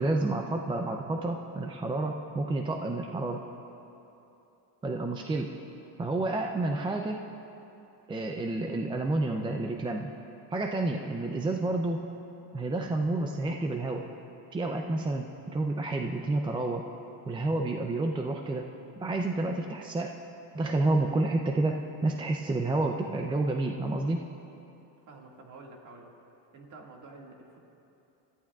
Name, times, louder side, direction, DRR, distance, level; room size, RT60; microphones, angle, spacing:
voice 1, 0.0-3.4 4.8-5.5 6.0-7.2 8.1-10.1 10.5-12.0 12.5-14.1 14.5-16.9 17.3-18.7 19.0-20.2 20.5-24.3, right 2 dB, 10° right, 3 dB, 0.4 m, -29 dB
voice 2, 25.0-26.1 26.5-27.6, right 3 dB, 40° right, 0 dB, 2.0 m, -49 dB
25.0 x 14.0 x 2.4 m, 2.9 s
cardioid pair, 135°, 44 cm